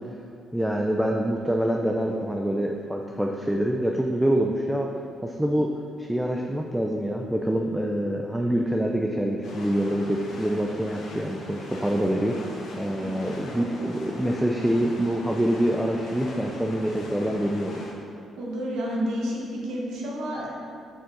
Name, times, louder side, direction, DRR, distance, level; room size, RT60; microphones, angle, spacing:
voice 1, 0.5-4.9 5.2-5.7 6.0-12.4 12.8-17.9, right 1 dB, 5° right, 1 dB, 0.4 m, -25 dB
sound 1, 9.4-17.9, left 2 dB, 75° left, 0.9 m, -40 dB
voice 2, 18.4-20.5, equal, 85° right, -3 dB, 1.4 m, -30 dB
6.3 x 4.7 x 3.9 m, 2.4 s
cardioid pair, 90°, 0 cm